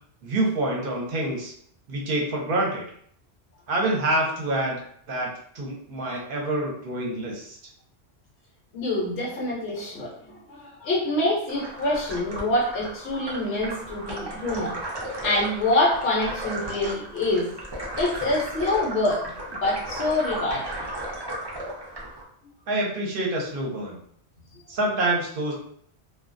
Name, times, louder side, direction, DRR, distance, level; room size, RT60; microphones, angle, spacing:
voice 1, 0.2-1.5 1.9-2.8 3.7-4.8 5.1-5.3 5.5-7.6 22.7-24.0 24.7-25.5, right 1 dB, 60° right, -1 dB, 0.8 m, -26 dB
voice 2, 8.7-14.8 15.2-17.5 18.0-20.9, left 2 dB, 65° left, -3 dB, 0.8 m, -26 dB
sound 1, 11.5-22.2, right 1 dB, 40° right, 0.3 m, -35 dB
2.2 x 2.2 x 2.5 m, 0.63 s
omnidirectional pair, 1.1 m